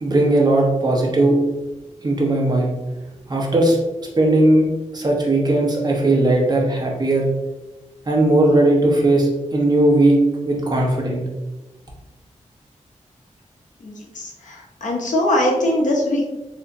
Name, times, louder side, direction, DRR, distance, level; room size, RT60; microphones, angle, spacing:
voice 1, 0.0-1.4 2.0-2.7 3.3-3.8 4.2-4.7 4.9-7.3 8.1-11.2, right 1 dB, 30° right, -1 dB, 0.9 m, -17 dB
voice 2, 13.8-16.3, left 1 dB, 85° left, -1 dB, 0.8 m, -21 dB
3.4 x 2.8 x 2.6 m, 1.1 s
wide cardioid pair, 95°, 13 cm